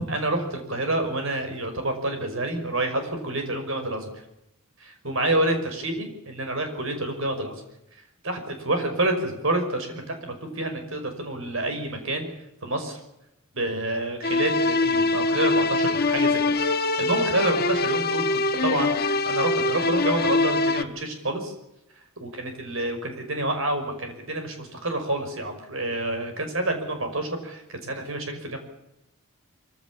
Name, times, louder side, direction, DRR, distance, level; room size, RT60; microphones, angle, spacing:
voice 1, 0.1-4.1 4.8-7.6 8.2-12.3 12.6-13.0 13.5-21.5 22.2-28.6, right 1 dB, 60° right, 6 dB, 5.6 m, -28 dB
sound 1, 14.2-20.8, left 3 dB, 45° left, 1.2 m, -23 dB
24.0 x 16.0 x 8.7 m, 0.87 s
head